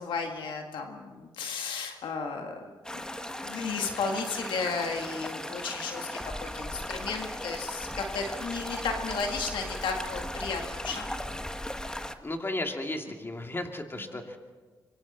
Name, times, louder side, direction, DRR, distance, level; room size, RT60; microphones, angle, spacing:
voice 1, 0.0-3.1 3.4-11.2, left 4 dB, 85° left, 3 dB, 1.9 m, -34 dB
sound 1, 2.8-12.1, left 1 dB, 10° left, 1.3 m, -37 dB
voice 2, 12.2-14.4, left 2 dB, 30° left, 3 dB, 2.8 m, -34 dB
25.0 x 24.0 x 4.3 m, 1.4 s
cardioid pair, 60°, 8 cm